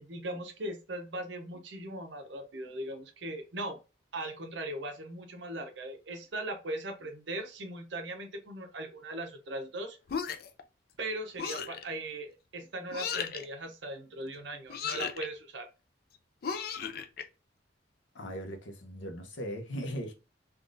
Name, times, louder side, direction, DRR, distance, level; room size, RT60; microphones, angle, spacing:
voice 1, 0.0-3.8 4.1-10.0 11.0-15.7, right 1 dB, 70° right, 0.7 m, -39 dB
sound 1, 10.1-10.6 11.4-11.8 12.9-13.5 14.7-15.3 16.4-17.2, left 7 dB, 50° left, 0.4 m, -35 dB
voice 2, 18.1-20.1, equal, 75° left, 0.7 m, -38 dB
3.6 x 2.3 x 2.5 m
head